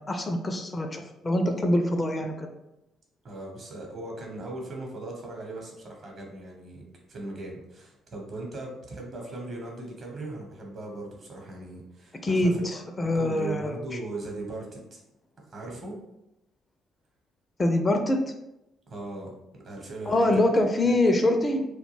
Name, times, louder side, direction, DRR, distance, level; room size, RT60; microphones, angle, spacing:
voice 1, 0.0-2.5 12.2-13.8 17.6-18.2 20.1-21.7, left 1 dB, 25° left, 5 dB, 0.4 m, -24 dB
voice 2, 3.2-12.7 13.0-15.0 15.4-16.0 18.9-20.4, right 2 dB, 45° right, 0 dB, 0.9 m, -39 dB
2.3 x 2.2 x 3.1 m, 0.88 s
figure-of-eight pair, 45°, 0 cm